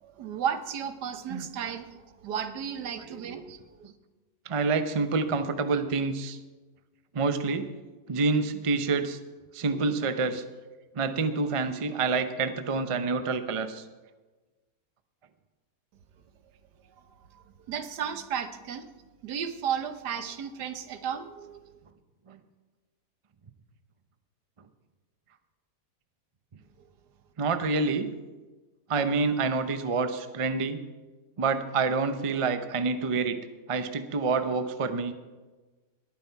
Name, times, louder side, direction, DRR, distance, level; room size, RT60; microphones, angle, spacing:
voice 1, 0.0-3.5 3.8-3.9 17.3-18.9 19.2-21.7, right 8 dB, 80° right, 10 dB, 1.5 m, -34 dB
voice 2, 3.1-3.4 4.5-6.4 7.1-7.7 8.1-9.2 9.5-10.4 10.9-13.8 22.3-22.4 27.4-28.1 28.9-30.8 31.4-33.4 33.7-35.1, right 4 dB, 35° right, 9 dB, 0.5 m, -27 dB
20.0 x 9.4 x 4.6 m, 1.2 s
omnidirectional pair, 1.8 m